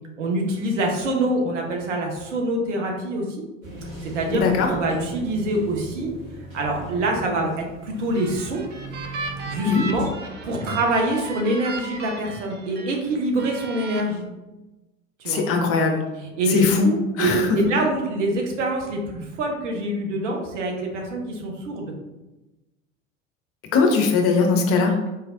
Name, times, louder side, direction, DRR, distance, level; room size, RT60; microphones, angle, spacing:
voice 1, 0.2-3.4 4.0-6.1 6.5-8.6 9.5-10.1 10.4-14.2 15.2-15.4 16.4-21.9, right 1 dB, 65° right, 1 dB, 0.9 m, -25 dB
sound 1, 3.6-10.1, right 1 dB, 90° right, 1.2 m, -38 dB
voice 2, 4.3-4.7 9.7-9.8 15.3-16.0 16.5-16.9 17.2-17.6 23.7-25.0, left 4 dB, 35° left, 2 dB, 0.7 m, -20 dB
sound 2, 7.9-13.0 13.4-14.0, right 2 dB, 25° right, 0.5 m, -36 dB
4.1 x 3.2 x 2.6 m, 1.1 s
figure-of-eight pair, 75°, 39 cm